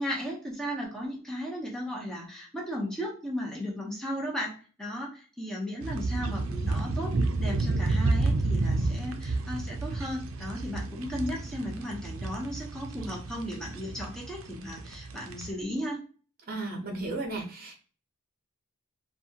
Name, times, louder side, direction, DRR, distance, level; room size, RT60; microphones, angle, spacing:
voice 1, 0.0-7.1 7.4-16.0, equal, 5° left, -3 dB, 0.7 m, -35 dB
sound 1, 5.8-15.5, right 2 dB, 70° right, 0.4 m, -30 dB
voice 2, 16.5-17.7, right 2 dB, 45° right, 2 dB, 0.8 m, -34 dB
2.7 x 2.3 x 2.8 m, 0.38 s
head